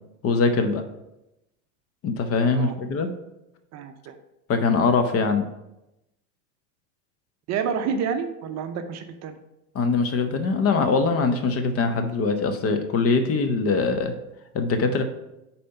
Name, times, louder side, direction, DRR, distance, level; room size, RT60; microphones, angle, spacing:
voice 1, 0.2-0.8 2.0-3.1 4.5-5.4 9.7-14.1 14.5-15.0, left 4 dB, 35° left, 8 dB, 0.8 m, -22 dB
voice 2, 3.7-4.1 7.5-9.4, right 6 dB, 40° right, 8 dB, 0.6 m, -29 dB
5.1 x 4.3 x 5.6 m, 0.90 s
supercardioid pair, 110°, 41 cm